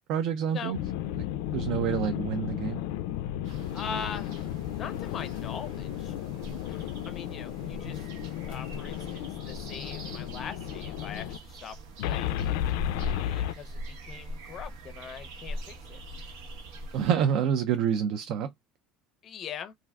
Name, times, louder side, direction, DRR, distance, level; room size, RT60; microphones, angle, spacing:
voice 1, 0.1-0.8 1.5-2.8 16.9-18.5, right 8 dB, 50° right, 0.3 m, -27 dB
sound 1, 0.7-11.4 12.0-13.5, left 12 dB, 90° left, 0.3 m, -33 dB
sound 2, 3.4-17.1, right 1 dB, 75° right, 1.0 m, -43 dB
voice 2, 3.7-4.3 4.7-6.1 6.7-8.1 8.5-11.8 12.0-12.4 13.2-16.0 19.2-19.7, left 6 dB, 30° left, 0.5 m, -41 dB
3.3 x 2.4 x 2.3 m
cardioid pair, 175°, 0 cm